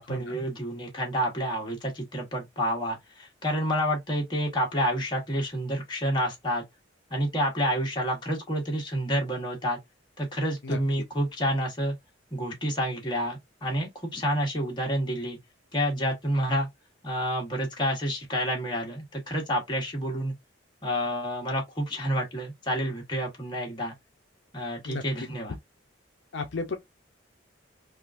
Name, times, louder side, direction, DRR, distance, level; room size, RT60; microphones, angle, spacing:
voice 1, 0.0-6.6 7.1-9.8 10.2-11.9 12.3-15.4 15.7-16.7 17.0-20.3 20.8-23.9 24.5-25.5, equal, 25° left, 1.1 m, -29 dB
voice 2, 26.3-26.8, left 4 dB, 65° left, 0.5 m, -33 dB
3.5 x 2.5 x 2.5 m
head